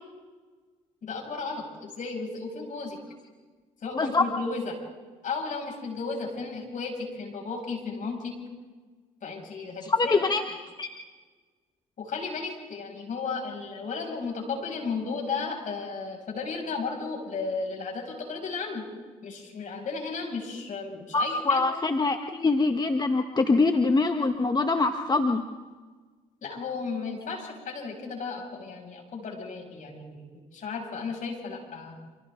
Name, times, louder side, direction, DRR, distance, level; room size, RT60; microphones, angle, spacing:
voice 1, 1.0-3.0 3.8-4.7 5.2-8.3 9.2-10.2 12.0-18.8 19.2-21.7 26.4-30.2 30.5-32.0, left 4 dB, 55° left, 0 dB, 7.6 m, -34 dB
voice 2, 3.9-4.2 9.9-10.4 10.8-10.9 21.1-25.4, left 3 dB, 25° left, 5 dB, 1.6 m, -24 dB
28.5 x 27.0 x 4.0 m, 1.4 s
hypercardioid pair, 60°, 16 cm